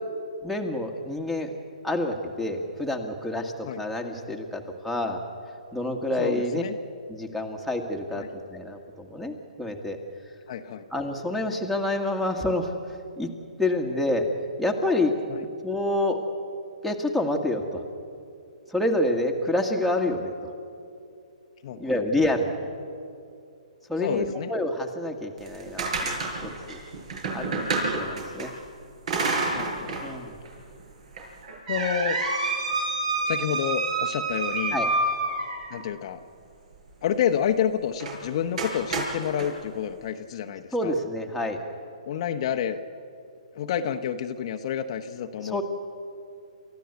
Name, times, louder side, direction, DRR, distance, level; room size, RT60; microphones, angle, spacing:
voice 1, 0.4-1.5 1.8-5.2 5.7-6.6 7.1-10.0 10.9-12.7 13.2-13.3 13.6-14.3 14.6-16.2 16.8-17.8 18.7-20.3 21.8-22.7 23.9-26.1 26.4-26.8 27.3-28.5 30.0-30.4 34.7-34.9 40.7-41.6 45.4-45.6, left 1 dB, ahead, 4 dB, 1.8 m, -28 dB
voice 2, 6.2-6.8 8.1-8.3 10.5-10.8 15.3-15.4 21.6-22.0 24.0-24.5 29.5-29.9 31.7-32.2 33.2-34.8 35.7-36.2 37.0-40.9 42.0-42.8 43.5-45.6, left 9 dB, 50° left, 6 dB, 1.1 m, -29 dB
sound 1, 25.4-28.5 29.1-30.1 30.4-30.5 31.2-35.8 38.0-38.2 38.6-39.5, right 3 dB, 60° right, 5.8 m, -28 dB
29.0 x 14.0 x 8.2 m, 2.5 s
hypercardioid pair, 140°, 4 cm